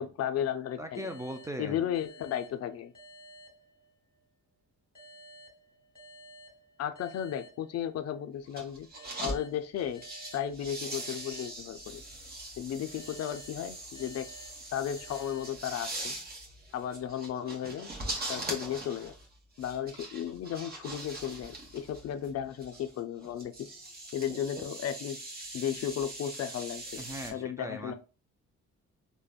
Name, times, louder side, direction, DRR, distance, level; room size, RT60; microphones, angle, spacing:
voice 1, 0.0-1.1 1.6-2.9 6.8-8.9 9.2-10.0 10.3-12.0 12.6-14.3 14.7-16.2 16.7-17.9 18.3-19.1 19.6-23.7 24.1-25.2 25.5-27.0 27.3-27.9, left 9 dB, 55° left, 9 dB, 0.4 m, -34 dB
voice 2, 0.8-1.8 27.0-27.9, equal, 10° right, 6 dB, 0.3 m, -39 dB
sound 1, 0.9-4.3 5.0-8.3 8.9-12.3 13.0-16.3, right 1 dB, 15° left, 1.3 m, -54 dB
sound 2, 8.5-9.4 9.8-27.3, right 2 dB, 30° right, 1.0 m, -42 dB
3.3 x 2.1 x 2.2 m, 0.33 s
cardioid pair, 90°, 30 cm